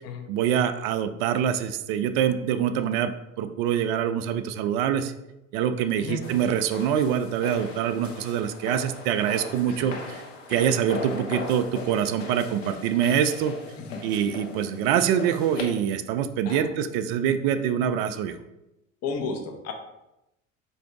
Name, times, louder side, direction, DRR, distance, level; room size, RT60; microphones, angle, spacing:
voice 1, 0.3-3.1 3.4-5.1 5.5-10.2 10.5-13.5 14.0-18.4, right 9 dB, 50° right, 10 dB, 0.4 m, -25 dB
sound 1, 6.2-15.6, left 3 dB, 75° left, 0.9 m, -39 dB
voice 2, 19.0-19.7, left 5 dB, 40° left, 5 dB, 0.8 m, -33 dB
4.2 x 2.7 x 4.6 m, 0.91 s
figure-of-eight pair, 70°, 39 cm